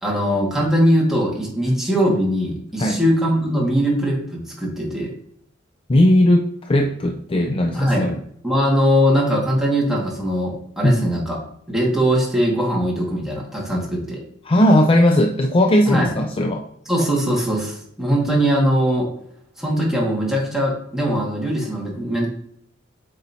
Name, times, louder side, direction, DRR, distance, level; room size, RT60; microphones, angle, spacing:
voice 1, 0.0-5.1 7.7-11.4 11.7-14.2 15.9-16.1 16.9-19.1 19.6-22.3, equal, ahead, -3 dB, 1.9 m, -21 dB
voice 2, 5.9-8.2 10.8-11.1 14.5-16.6, left 1 dB, 25° left, 4 dB, 0.4 m, -17 dB
8.1 x 5.3 x 2.8 m, 0.69 s
head